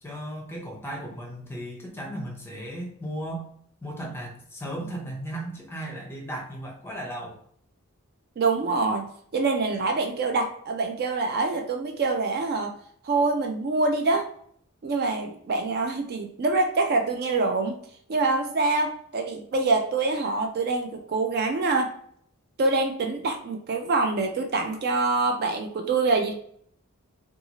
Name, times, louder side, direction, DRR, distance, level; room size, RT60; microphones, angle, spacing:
voice 1, 0.0-3.5 3.8-7.4, right 1 dB, 10° left, -1 dB, 0.6 m, -36 dB
voice 2, 8.4-9.1 9.3-12.7 13.0-14.3 14.8-17.8 18.1-21.9 22.6-26.3, right 3 dB, 45° right, 4 dB, 0.4 m, -25 dB
2.7 x 2.3 x 2.8 m, 0.63 s
head